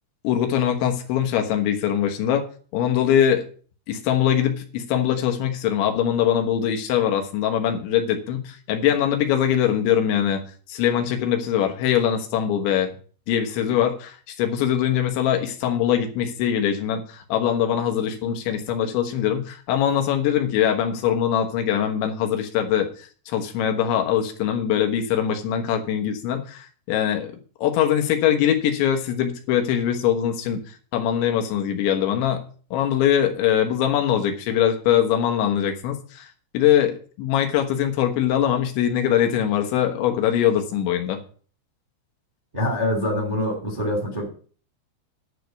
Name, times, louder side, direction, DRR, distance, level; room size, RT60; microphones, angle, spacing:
voice 1, 0.2-2.4 2.7-3.4 3.9-10.4 10.7-12.9 13.3-27.3 27.6-30.6 30.9-32.4 32.7-36.3 36.5-41.2, left 10 dB, 75° left, 4 dB, 3.5 m, -22 dB
voice 2, 42.5-44.3, left 1 dB, 15° right, 1 dB, 1.6 m, -25 dB
10.5 x 5.0 x 8.0 m, 0.41 s
omnidirectional pair, 5.4 m